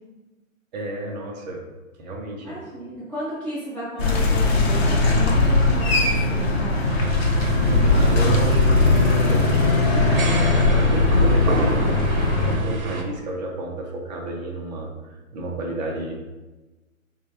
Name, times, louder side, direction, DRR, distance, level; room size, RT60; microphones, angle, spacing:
voice 1, 0.7-1.6 2.0-2.6 7.4-16.1, right 2 dB, 30° right, 0 dB, 0.7 m, -32 dB
voice 2, 2.4-6.9 12.9-13.0, right 1 dB, 5° left, -11 dB, 0.6 m, -34 dB
sound 1, 4.0-12.5, left 2 dB, 50° left, 0.7 m, -19 dB
sound 2, 6.9-13.0, right 2 dB, 85° right, 0.8 m, -28 dB
4.4 x 2.3 x 2.9 m, 1.2 s
hypercardioid pair, 140°, 41 cm